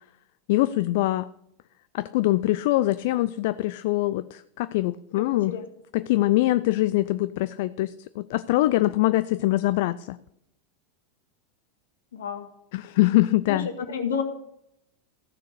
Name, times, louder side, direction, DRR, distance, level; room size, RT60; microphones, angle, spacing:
voice 1, 0.5-1.3 1.9-5.6 5.9-10.2 12.7-13.7, left 17 dB, 60° left, 15 dB, 0.4 m, -23 dB
voice 2, 5.3-5.6 12.1-12.5 13.5-14.2, left 6 dB, 80° left, 5 dB, 1.8 m, -30 dB
14.5 x 6.4 x 6.6 m, 0.79 s
hypercardioid pair, 95°, 0 cm